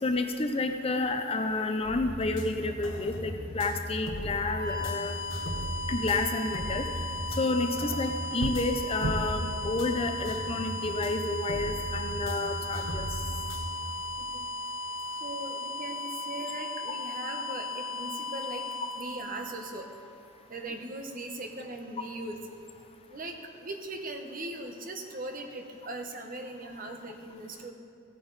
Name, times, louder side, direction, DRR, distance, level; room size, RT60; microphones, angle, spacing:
voice 1, 0.0-5.2 5.9-6.9 7.4-13.1, left 3 dB, 30° left, 6 dB, 0.6 m, -30 dB
sound 1, 1.8-13.7, equal, 70° left, 1.4 m, -37 dB
sound 2, 4.3-20.1, left 1 dB, 55° left, 1.7 m, -37 dB
sound 3, 6.8-11.3, right 2 dB, 85° right, 0.6 m, -39 dB
voice 2, 15.1-18.6 18.9-19.9 20.5-22.4 23.1-27.7, right 2 dB, 45° right, 4 dB, 1.0 m, -39 dB
16.0 x 8.8 x 4.0 m, 2.5 s
head